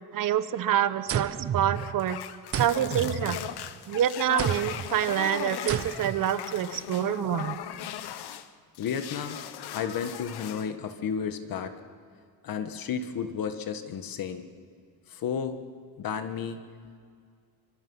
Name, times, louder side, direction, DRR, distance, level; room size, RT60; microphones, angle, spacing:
voice 1, 0.1-2.2 2.6-3.4 3.9-7.6, right 10 dB, 60° right, 13 dB, 1.0 m, -27 dB
sound 1, 1.1-2.1 2.5-3.8 4.4-4.9 5.7-6.3, right 9 dB, 40° right, 0.5 m, -32 dB
sound 2, 1.7-8.5 8.8-10.7, left 11 dB, 80° left, 1.1 m, -38 dB
voice 2, 8.8-9.4 9.7-11.8 12.4-14.5 15.1-15.6 16.0-16.6, left 7 dB, 60° left, 8 dB, 1.6 m, -32 dB
25.0 x 25.0 x 5.6 m, 2.2 s
cardioid pair, 155°, 38 cm